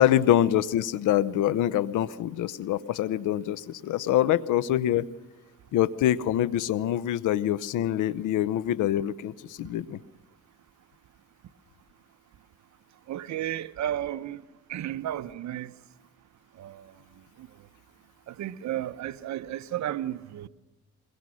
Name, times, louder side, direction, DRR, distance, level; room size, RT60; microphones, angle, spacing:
voice 1, 0.0-5.1 5.7-10.0, left 12 dB, 85° left, 0.8 m, -25 dB
voice 2, 13.1-14.4 14.7-15.7 16.6-16.9 17.4-17.5 18.3-20.5, right 12 dB, 65° right, 0.8 m, -33 dB
22.0 x 22.0 x 6.4 m
cardioid pair, 90°, 30 cm